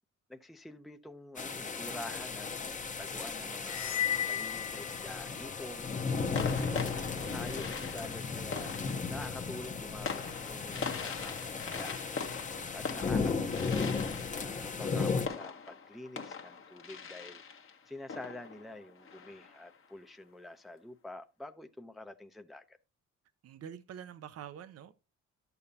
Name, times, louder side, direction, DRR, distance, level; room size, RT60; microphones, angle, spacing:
voice 1, 0.3-2.5 3.0-5.9 6.4-12.0 12.7-22.8, left 1 dB, ahead, 0.6 m, -47 dB
sound 1, 1.4-15.3, left 4 dB, 25° left, 0.8 m, -35 dB
sound 2, 3.7-5.5, left 10 dB, 65° left, 0.6 m, -35 dB
sound 3, 5.1-5.4 6.3-19.8, left 5 dB, 45° left, 1.1 m, -42 dB
voice 2, 23.4-24.9, right 9 dB, 55° right, 0.6 m, -47 dB
11.0 x 6.9 x 2.7 m
cardioid pair, 90°, 30 cm